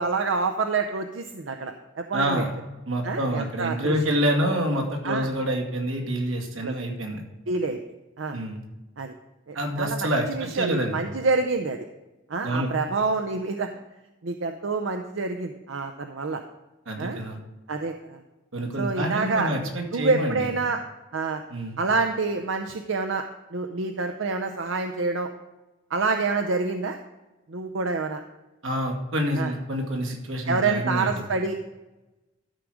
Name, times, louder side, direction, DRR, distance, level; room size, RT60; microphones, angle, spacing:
voice 1, 0.0-2.4 3.0-3.9 5.0-5.3 6.6-6.8 7.5-7.8 8.2-8.4 9.0-9.1 9.5-11.8 12.3-13.7 14.2-16.4 17.0-17.2 17.7-18.2 18.8-19.5 19.9-20.8 21.1-21.4 21.8-23.2 23.5-25.3 25.9-27.0 27.5-28.2 29.4-29.5 30.5-31.6, right 4 dB, 70° right, 6 dB, 0.6 m, -27 dB
voice 2, 2.1-2.5 2.9-7.2 8.3-8.6 9.5-11.0 12.4-12.7 16.9-17.4 18.5-20.5 21.5-21.8 28.6-31.1, equal, 90° right, 2 dB, 2.1 m, -27 dB
13.0 x 4.9 x 6.2 m, 1.1 s
head